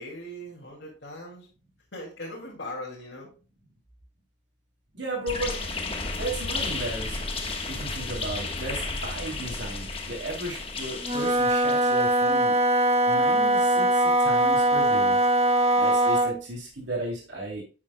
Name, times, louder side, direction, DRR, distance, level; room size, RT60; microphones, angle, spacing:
voice 1, 0.0-1.5 1.9-3.3, left 1 dB, 70° left, -4 dB, 2.3 m, -39 dB
voice 2, 4.9-5.8 6.1-7.3 7.7-12.6 13.1-15.1 15.7-17.6, right 1 dB, 75° right, -2 dB, 2.8 m, -35 dB
sound 1, 5.3-12.3, left 3 dB, 30° left, 1.2 m, -33 dB
Wind instrument woodwind instrument, 11.0-16.4, right 1 dB, 35° right, 1.4 m, -21 dB
10.0 x 7.3 x 2.2 m, 0.34 s
head